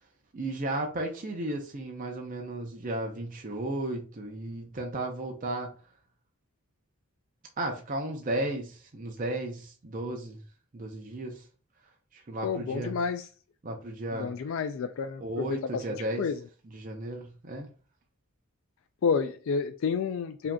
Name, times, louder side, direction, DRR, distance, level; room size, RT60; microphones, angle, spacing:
voice 1, 0.3-5.7 7.6-10.4 10.7-11.4 12.1-13.0 13.6-14.3 15.2-16.2 16.7-17.7, right 1 dB, 40° right, 0.6 m, -34 dB
voice 2, 12.4-13.3 14.1-15.8 16.2-16.4 19.0-20.5, left 5 dB, 70° left, 0.3 m, -30 dB
4.9 x 2.8 x 2.2 m
head